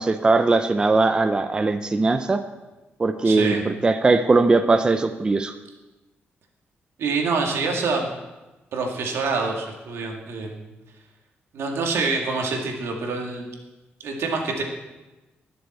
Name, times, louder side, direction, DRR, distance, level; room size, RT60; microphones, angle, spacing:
voice 1, 0.0-2.4 3.0-5.5, right 3 dB, 20° right, 8 dB, 0.5 m, -20 dB
voice 2, 3.2-3.6 7.0-8.1 8.7-10.7 11.5-13.5 14.0-14.6, right 4 dB, 85° right, 2 dB, 2.0 m, -26 dB
20.0 x 7.0 x 4.3 m, 1.1 s
wide cardioid pair, 160°, 4 cm